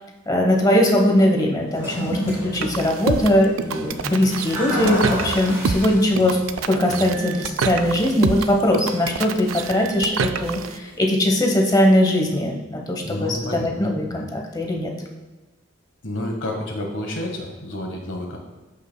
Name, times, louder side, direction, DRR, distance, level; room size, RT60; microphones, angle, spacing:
voice 1, 0.3-6.4 6.7-14.9, left 1 dB, 20° left, 1 dB, 1.0 m, -20 dB
Toilet flush, 1.7-11.0, equal, 15° right, 2.6 m, -32 dB
sound 1, 2.5-10.8, right 5 dB, 85° right, 0.4 m, -27 dB
voice 2, 13.0-14.2 16.0-18.4, left 1 dB, 70° left, 2 dB, 1.5 m, -30 dB
13.5 x 5.5 x 2.2 m, 1.2 s
head